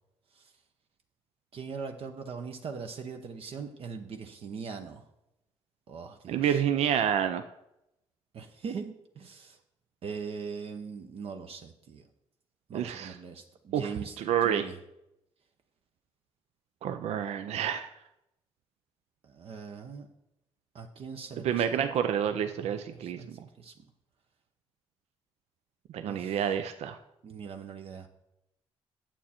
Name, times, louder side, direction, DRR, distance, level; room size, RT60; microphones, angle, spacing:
voice 1, 1.5-5.0 5.9-6.6 8.3-9.6 10.0-12.1 12.7-14.2 14.4-14.8 19.2-20.1 20.7-21.9 22.3-23.3 23.6-23.7 26.1-26.4 27.2-28.1, right 5 dB, 60° right, 5 dB, 0.9 m, -41 dB
voice 2, 6.3-7.4 12.7-13.1 13.7-13.9 14.2-14.7 16.8-17.9 21.4-23.4 25.9-27.0, right 9 dB, 75° right, 9 dB, 0.5 m, -28 dB
9.1 x 7.4 x 4.3 m, 0.85 s
cardioid pair, 75°, 11 cm